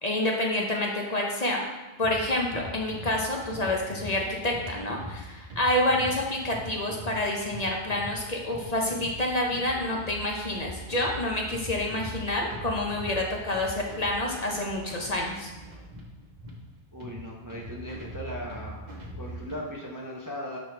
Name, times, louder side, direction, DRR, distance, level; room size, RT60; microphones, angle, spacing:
voice 1, 0.0-1.6 2.0-15.5, left 1 dB, 40° left, -1 dB, 0.7 m, -28 dB
sound 1, 2.0-19.5, equal, 40° right, 1.2 m, -42 dB
voice 2, 16.9-18.9 19.2-20.6, equal, 25° right, -2 dB, 0.5 m, -38 dB
6.4 x 5.0 x 3.3 m, 1.1 s
omnidirectional pair, 1.1 m